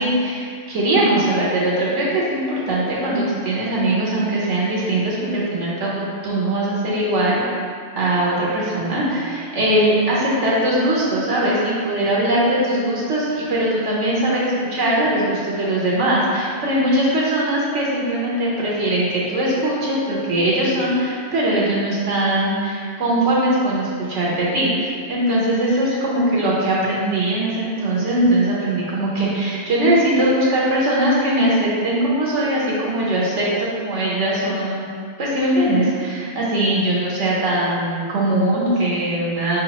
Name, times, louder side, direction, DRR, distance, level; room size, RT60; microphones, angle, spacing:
voice 1, 0.0-7.4 8.0-24.7 25.1-34.9 35.2-39.6, right 1 dB, 70° right, -5 dB, 1.2 m, -20 dB
4.6 x 3.9 x 2.9 m, 2.1 s
omnidirectional pair, 1.3 m